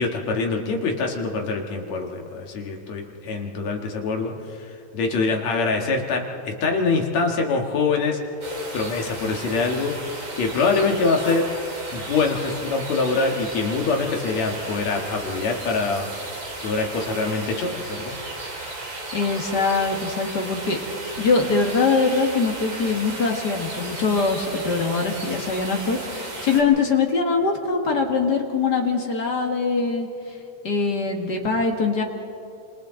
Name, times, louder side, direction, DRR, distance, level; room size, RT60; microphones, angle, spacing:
voice 1, 0.0-4.3 4.9-8.2 8.7-11.5 11.9-16.1 16.6-18.2, left 4 dB, 65° left, 2 dB, 2.8 m, -24 dB
sound 1, 8.4-26.6, right 2 dB, 40° right, 3.6 m, -34 dB
voice 2, 19.1-20.8 21.2-30.1 30.6-32.0, left 4 dB, 40° left, 2 dB, 1.9 m, -22 dB
28.0 x 27.0 x 3.9 m, 2.5 s
omnidirectional pair, 3.6 m